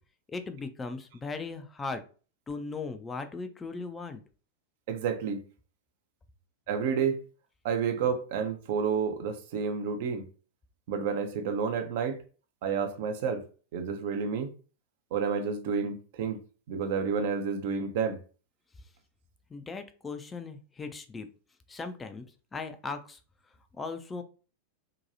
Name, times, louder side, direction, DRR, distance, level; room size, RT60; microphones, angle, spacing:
voice 1, 0.3-2.0 2.5-4.2 19.5-21.3 21.7-22.2 22.5-23.2 23.8-24.2, left 4 dB, 15° left, 0.4 m, -38 dB
voice 2, 4.9-5.4 6.7-7.2 7.6-10.3 10.9-12.2 12.6-13.4 13.7-14.5 15.1-16.4 16.7-18.2, right 6 dB, 50° right, 0.5 m, -30 dB
2.8 x 2.2 x 2.6 m
figure-of-eight pair, 90°, 0 cm